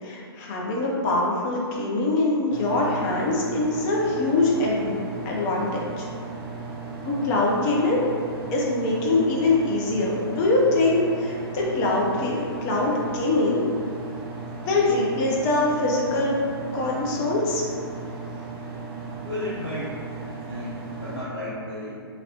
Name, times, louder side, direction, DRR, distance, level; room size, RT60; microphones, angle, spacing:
voice 1, 0.0-5.0 5.3-6.1 7.0-8.0 8.5-13.6 14.6-16.3 16.7-17.6, left 2 dB, 25° left, -3 dB, 0.5 m, -23 dB
sound 1, 2.5-21.2, right 4 dB, 30° right, 0.5 m, -36 dB
voice 2, 19.2-20.0 20.5-22.0, left 1 dB, 90° left, -11 dB, 0.8 m, -33 dB
2.8 x 2.5 x 2.9 m, 2.3 s
figure-of-eight pair, 120°, 13 cm